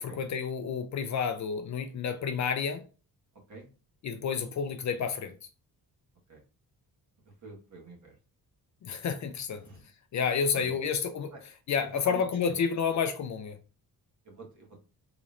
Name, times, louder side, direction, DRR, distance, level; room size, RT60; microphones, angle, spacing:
voice 1, 0.0-2.8 4.0-5.3 8.8-9.6 10.1-11.3 11.7-13.6, left 6 dB, 50° left, 0.5 m, -30 dB
voice 2, 7.4-8.1 9.6-9.8 10.5-10.9 11.3-11.4 12.0-12.2 14.2-14.8, right 3 dB, 45° right, 1.6 m, -45 dB
3.9 x 3.1 x 2.4 m
wide cardioid pair, 165°, 38 cm